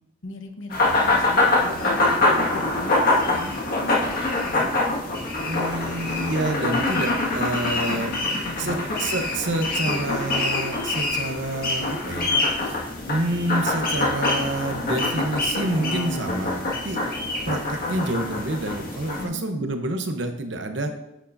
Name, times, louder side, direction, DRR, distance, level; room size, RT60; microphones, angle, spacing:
voice 1, 0.2-4.7 7.9-8.9 19.2-19.7, left 2 dB, 80° left, 4 dB, 1.1 m, -39 dB
sound 1, 0.7-19.3, left 2 dB, 50° left, 1.9 m, -24 dB
voice 2, 5.4-8.1 8.6-12.3 12.6-12.8 13.1-17.2 17.5-20.9, right 2 dB, 65° right, 6 dB, 0.9 m, -28 dB
9.8 x 8.2 x 2.7 m, 0.89 s
head